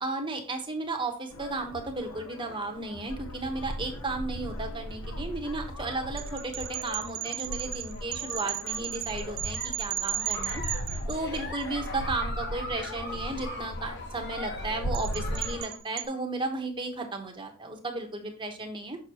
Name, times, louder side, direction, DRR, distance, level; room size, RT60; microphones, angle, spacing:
voice 1, 0.0-10.6 11.1-19.0, right 2 dB, 20° right, 3 dB, 1.0 m, -34 dB
sound 1, 1.3-15.6, equal, 85° left, 1.0 m, -38 dB
sound 2, 6.2-11.6 14.9-16.1, right 13 dB, 55° right, 0.6 m, -35 dB
Giggle, 9.1-15.8, left 2 dB, 50° left, 1.3 m, -41 dB
6.3 x 6.3 x 2.9 m, 0.39 s
head